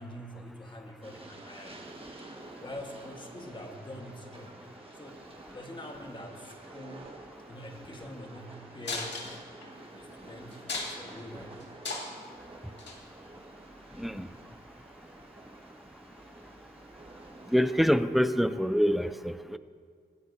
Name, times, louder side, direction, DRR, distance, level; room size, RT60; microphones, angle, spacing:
voice 1, 0.0-1.9 2.6-4.7 5.0-7.1 7.5-9.2 9.9-10.6 10.9-11.6, left 1 dB, 25° left, 2 dB, 1.4 m, -45 dB
Train, 1.0-17.9, right 2 dB, 30° right, 1.4 m, -50 dB
sound 1, 8.9-9.7 10.1-10.2 10.5-11.2 11.6-12.3 12.8-13.0 13.9-14.1, left 3 dB, 80° left, 1.9 m, -35 dB
voice 2, 17.5-19.6, equal, ahead, 12 dB, 0.4 m, -26 dB
23.0 x 9.4 x 2.7 m, 2.2 s
wide cardioid pair, 100°, 18 cm